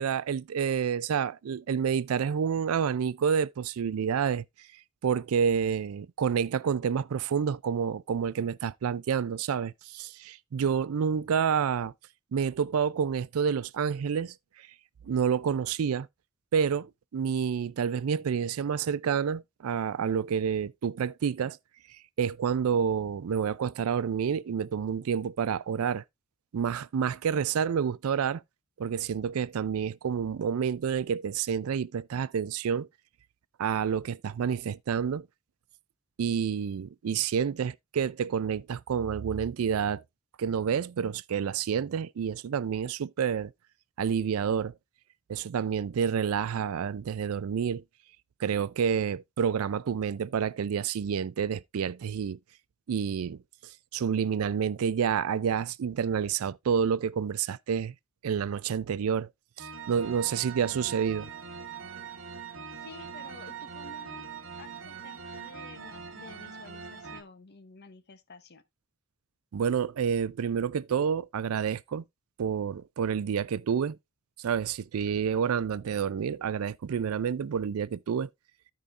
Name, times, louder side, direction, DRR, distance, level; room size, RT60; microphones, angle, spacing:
voice 1, 0.0-4.4 5.0-11.9 12.3-14.3 15.0-16.1 16.5-21.6 22.2-26.0 26.5-28.4 28.8-32.9 33.6-35.2 36.2-40.0 40.4-43.5 44.0-44.7 45.3-47.8 48.4-52.4 52.9-53.4 53.9-57.9 58.2-59.3 59.6-61.3 69.5-72.0 72.4-74.0 74.4-78.3, right 7 dB, 90° right, 0.4 m, -29 dB
sound 1, 59.6-67.2, right 6 dB, 60° right, 1.2 m, -42 dB
voice 2, 62.7-64.3 64.6-68.6, left 3 dB, 50° left, 0.9 m, -51 dB
14.5 x 5.0 x 2.5 m
head